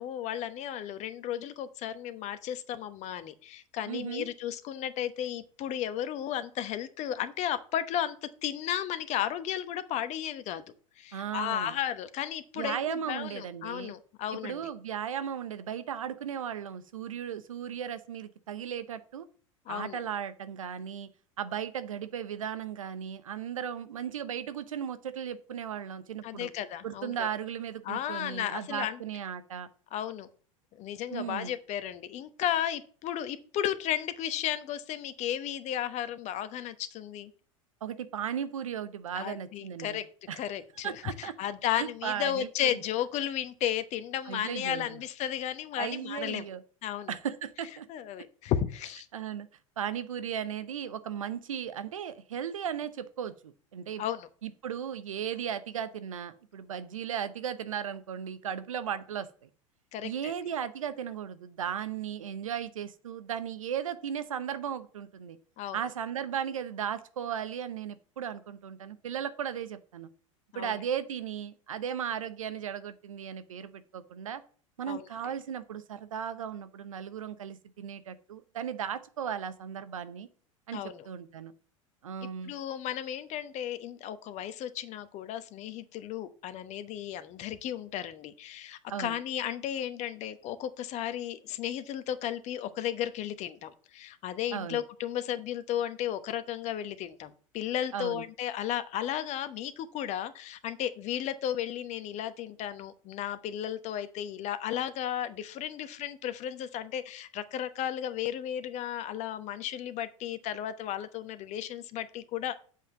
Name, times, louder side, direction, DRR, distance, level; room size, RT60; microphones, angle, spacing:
voice 1, 0.0-10.6 11.0-14.7 19.7-20.0 26.2-27.3 27.8-29.0 29.9-30.3 30.7-37.3 39.1-40.0 40.4-46.5 46.8-47.1 47.9-49.1 54.0-54.3 59.9-60.3 65.6-65.8 70.5-70.7 74.9-75.1 80.7-81.1 82.4-112.6, left 11 dB, 40° left, 12 dB, 1.0 m, -34 dB
voice 2, 3.9-4.3 11.1-11.8 12.6-13.9 14.3-19.2 19.7-21.1 21.4-26.5 26.8-29.7 31.1-31.6 37.8-40.0 40.3-40.4 40.8-41.3 41.7-42.7 44.3-45.0 45.8-46.6 47.1-47.9 49.1-49.5 49.8-54.0 54.4-59.5 60.0-65.4 65.7-70.1 70.5-74.4 74.8-80.3 80.7-81.5 82.0-82.5 88.9-89.1 94.5-94.8 97.9-98.2, right 8 dB, 75° right, 13 dB, 0.8 m, -36 dB
7.5 x 5.7 x 7.1 m, 0.44 s
figure-of-eight pair, 85°, 17 cm